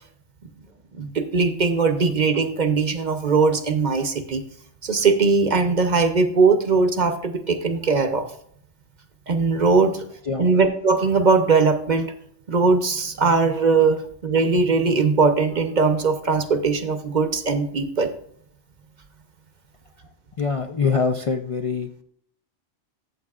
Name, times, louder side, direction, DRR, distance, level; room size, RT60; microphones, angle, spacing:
voice 1, 0.9-4.4 4.8-8.3 9.3-10.0 10.4-12.1 12.5-18.1, right 4 dB, 45° right, 8 dB, 0.8 m, -20 dB
voice 2, 20.4-21.9, left 5 dB, 45° left, 4 dB, 0.4 m, -24 dB
13.5 x 7.4 x 2.4 m, 0.65 s
omnidirectional pair, 1.1 m